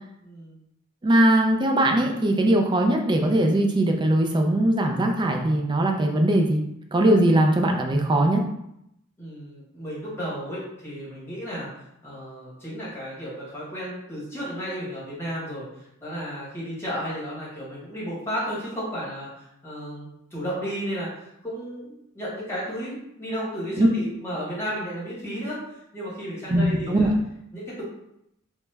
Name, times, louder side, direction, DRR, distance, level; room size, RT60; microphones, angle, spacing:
voice 1, 0.2-0.6 9.2-11.7 12.0-15.6 16.0-25.6 25.9-27.1 27.5-27.8, equal, 10° left, -8 dB, 1.3 m, -33 dB
voice 2, 1.0-6.6 6.9-8.4 23.8-23.9 26.5-27.1, right 1 dB, 20° right, 3 dB, 0.3 m, -20 dB
3.0 x 2.2 x 3.3 m, 0.80 s
head